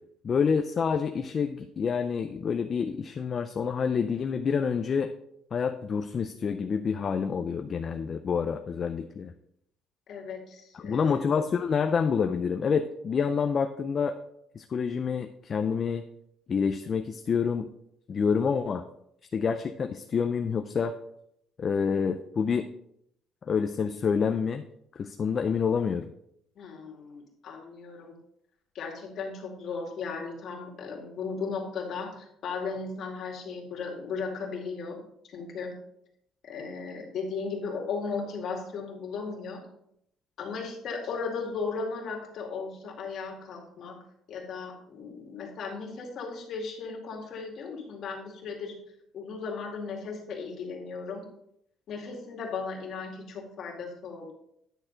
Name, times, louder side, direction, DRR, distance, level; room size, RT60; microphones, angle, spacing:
voice 1, 0.2-5.1 5.5-9.3 10.8-14.1 14.6-16.0 16.5-17.7 18.1-18.8 19.3-20.9 21.6-22.7 23.5-24.6 25.0-26.1, left 6 dB, 30° left, 6 dB, 0.4 m, -27 dB
voice 2, 10.1-11.2 26.6-28.2 28.7-35.0 35.3-35.8 36.4-39.6 40.4-44.0 44.3-48.8 49.1-51.2 51.9-54.3, left 4 dB, 45° left, -1 dB, 2.2 m, -36 dB
9.9 x 6.5 x 3.9 m, 0.75 s
cardioid pair, 165°, 0 cm